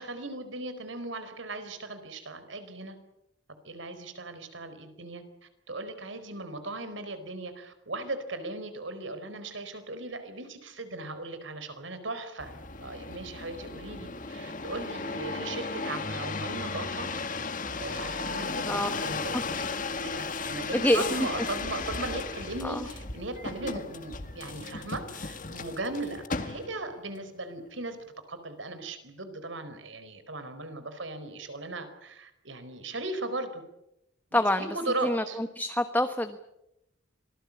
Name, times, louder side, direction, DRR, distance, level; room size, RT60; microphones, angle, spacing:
voice 1, 0.0-3.0 3.6-12.5 12.8-17.1 17.8-19.7 20.0-28.0 28.3-33.6 34.3-35.4, right 2 dB, 85° right, 10 dB, 4.5 m, -38 dB
sound 1, 12.4-26.9 27.5-28.1, left 4 dB, 45° left, 1.8 m, -35 dB
voice 2, 20.7-21.0 22.6-22.8 34.3-34.7 35.0-36.4, left 1 dB, 10° left, 7 dB, 1.2 m, -26 dB
26.5 x 20.0 x 8.6 m, 0.85 s
head